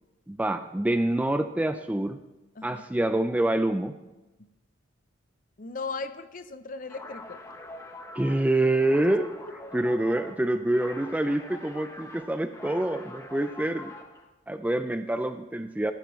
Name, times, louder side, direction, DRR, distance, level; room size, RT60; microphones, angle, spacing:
voice 1, 0.3-2.2 2.6-3.9 8.1-9.3 9.7-13.9 14.5-15.9, right 1 dB, 5° right, 9 dB, 0.3 m, -26 dB
voice 2, 5.6-7.4, left 4 dB, 40° left, 11 dB, 0.6 m, -37 dB
sound 1, 6.8-14.3, left 2 dB, 15° left, 0.9 m, -44 dB
14.5 x 12.5 x 3.2 m, 1.0 s
head